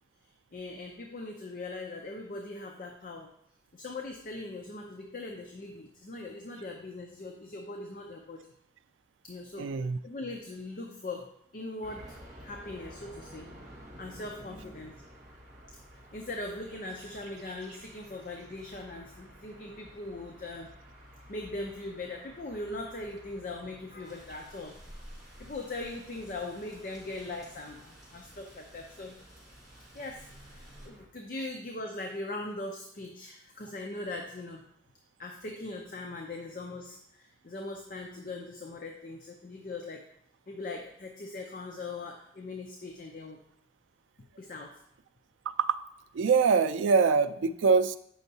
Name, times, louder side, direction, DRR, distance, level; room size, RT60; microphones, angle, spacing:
voice 1, 0.5-3.3 3.7-8.5 9.2-9.7 10.0-12.2 12.4-13.5 14.0-15.0 15.9-20.7 21.3-24.8 25.4-29.2 29.9-34.7 35.2-40.1 40.5-43.4 44.4-44.8, left 2 dB, 45° left, 2 dB, 0.5 m, -40 dB
voice 2, 9.6-10.0 45.5-45.8 46.1-48.0, right 5 dB, 85° right, 12 dB, 0.3 m, -24 dB
sound 1, 11.8-31.1, equal, 40° right, 1.3 m, -53 dB
sound 2, 24.0-30.9, equal, ahead, 2.3 m, -53 dB
7.8 x 5.3 x 2.7 m, 0.72 s
head